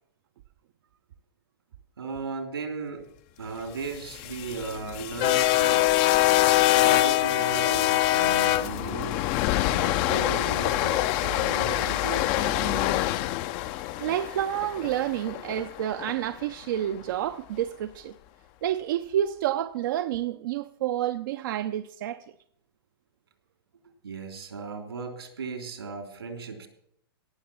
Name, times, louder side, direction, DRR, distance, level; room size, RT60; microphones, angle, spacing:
voice 1, 2.0-3.0 3.4-5.9 6.7-9.2 9.7-13.0 24.0-26.7, right 4 dB, 85° right, 3.3 m, -36 dB
sound 1, 3.9-16.1, left 15 dB, 40° left, 0.5 m, -24 dB
voice 2, 14.0-18.1 18.6-22.2, right 11 dB, 60° right, 0.6 m, -29 dB
17.5 x 6.7 x 7.2 m
hypercardioid pair, 115°, 13 cm